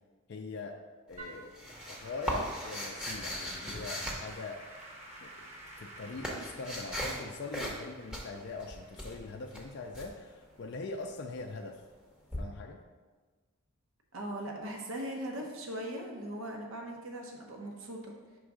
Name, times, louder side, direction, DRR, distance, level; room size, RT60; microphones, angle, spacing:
voice 1, 0.3-0.8 1.1-1.6 1.9-4.6 5.2-5.5 5.8-11.8 12.4-12.8, left 3 dB, 50° left, 2 dB, 0.4 m, -42 dB
sound 1, 1.1-4.9 5.7-7.2 7.5-7.8 8.1-10.1 12.3-12.4, equal, 5° right, 0.7 m, -38 dB
Applause / Keyboard (musical), 1.2-10.5, right 1 dB, 30° right, 0.9 m, -51 dB
voice 2, 14.1-18.1, right 1 dB, 60° right, 1 dB, 0.8 m, -39 dB
5.4 x 3.5 x 4.9 m, 1.4 s
head